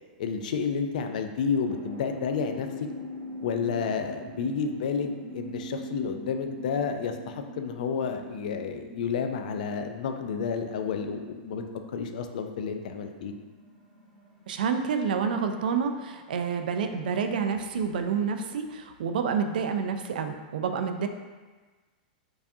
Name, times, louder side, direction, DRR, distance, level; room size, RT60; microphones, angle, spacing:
voice 1, 0.2-2.9 3.4-11.6 11.9-13.3, left 6 dB, 60° left, 6 dB, 0.3 m, -30 dB
sound 1, 1.6-17.7, right 1 dB, 20° right, 1.3 m, -44 dB
voice 2, 14.5-21.1, right 6 dB, 75° right, 6 dB, 0.4 m, -28 dB
4.6 x 2.4 x 2.7 m, 1.3 s
supercardioid pair, 170°, 5 cm